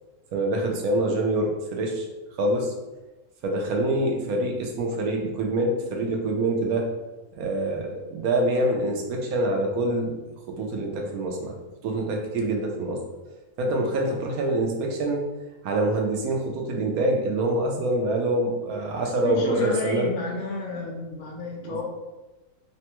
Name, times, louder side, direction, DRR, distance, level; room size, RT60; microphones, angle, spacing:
voice 1, 0.3-2.1 2.4-2.7 3.4-6.9 7.3-10.1 10.5-11.5 11.8-13.0 13.6-15.2 15.6-20.1 21.6-21.8, right 1 dB, 80° right, 1 dB, 1.1 m, -25 dB
voice 2, 19.2-21.9, left 2 dB, 75° left, -1 dB, 1.1 m, -32 dB
3.3 x 2.2 x 2.9 m, 1.1 s
omnidirectional pair, 1.5 m